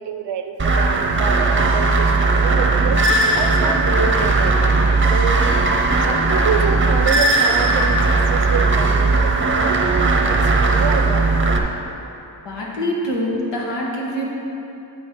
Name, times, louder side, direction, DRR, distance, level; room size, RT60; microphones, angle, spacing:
voice 1, 0.0-11.3, right 7 dB, 80° right, 7 dB, 0.6 m, -27 dB
sound 1, 0.6-11.6, right 3 dB, 30° right, 0.7 m, -17 dB
voice 2, 12.4-14.2, equal, 85° left, -4 dB, 1.5 m, -24 dB
10.0 x 4.2 x 4.6 m, 2.8 s
cardioid pair, 75°, 42 cm